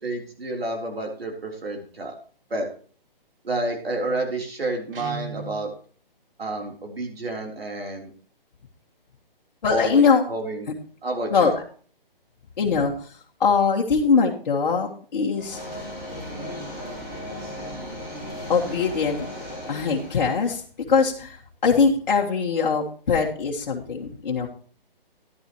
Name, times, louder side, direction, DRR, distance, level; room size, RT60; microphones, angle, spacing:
voice 1, 0.0-2.2 2.5-2.7 3.4-5.7 6.4-8.1 9.7-10.0 10.3-10.7 11.0-11.5, right 2 dB, 85° right, 2 dB, 3.7 m, -29 dB
Guitar, 4.9-5.7, right 4 dB, 65° right, 1.9 m, -36 dB
voice 2, 9.6-10.2 11.3-11.5 12.6-12.9 13.4-15.6 18.5-19.3 19.7-20.6 20.9-21.4 21.6-24.5, left 5 dB, 50° left, -2 dB, 1.7 m, -21 dB
Sound produced when deploying a projector screen, 15.3-20.5, equal, 15° right, 3.7 m, -36 dB
11.5 x 11.0 x 3.1 m, 0.43 s
hypercardioid pair, 165°, 29 cm